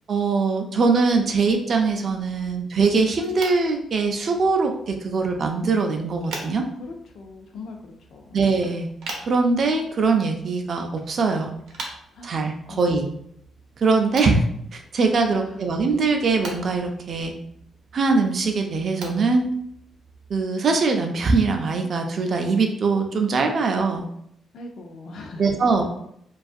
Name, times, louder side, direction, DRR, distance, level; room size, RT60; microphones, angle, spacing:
voice 1, 0.1-6.6 8.3-8.9 9.3-11.5 12.2-13.1 13.8-14.4 14.7-17.3 17.9-19.5 20.3-24.0 25.4-25.9, right 4 dB, 45° right, 4 dB, 0.4 m, -22 dB
sound 1, 3.1-20.4, right 2 dB, 85° right, 0.6 m, -43 dB
voice 2, 6.8-8.4 12.1-12.3 12.7-13.0 15.3-15.5 24.5-25.6, left 2 dB, 65° left, 2 dB, 0.3 m, -40 dB
2.4 x 2.3 x 2.6 m, 0.72 s
cardioid pair, 150°, 0 cm